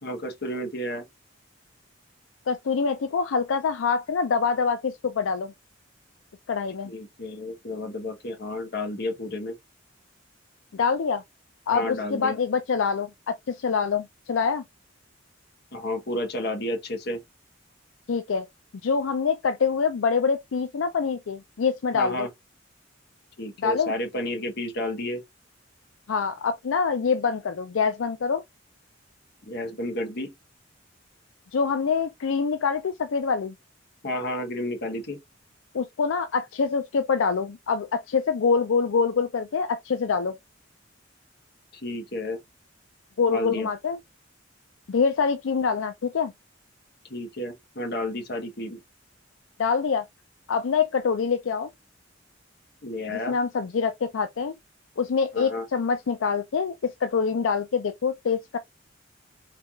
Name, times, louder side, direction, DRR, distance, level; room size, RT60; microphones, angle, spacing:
voice 1, 0.0-1.0 6.8-9.5 11.7-12.4 15.7-17.2 21.9-22.3 23.4-25.2 29.5-30.3 34.0-35.2 41.7-42.4 43.3-43.7 47.1-48.8 52.8-53.4 55.3-55.6, left 1 dB, 55° left, 1.2 m, -31 dB
voice 2, 2.5-5.5 6.5-6.9 10.7-11.2 11.7-14.6 18.1-18.5 18.8-22.3 23.6-23.9 26.1-28.4 31.5-33.5 35.7-40.4 43.2-44.0 44.9-46.3 49.6-50.0 50.5-51.7 53.1-54.6 55.0-58.6, left 5 dB, 85° left, 0.4 m, -25 dB
4.2 x 3.3 x 2.3 m
head